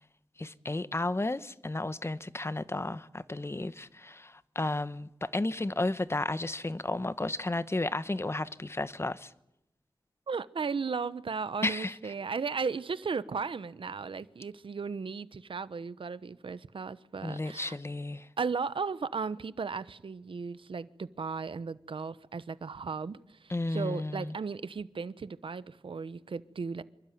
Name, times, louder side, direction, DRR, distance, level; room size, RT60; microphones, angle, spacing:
voice 1, 0.4-9.3 11.6-12.0 17.2-18.3 23.5-24.3, left 2 dB, 30° left, 1.1 m, -33 dB
voice 2, 10.3-17.8 18.4-26.8, right 5 dB, 85° right, 1.0 m, -36 dB
26.5 x 24.0 x 9.4 m
wide cardioid pair, 60°, 9 cm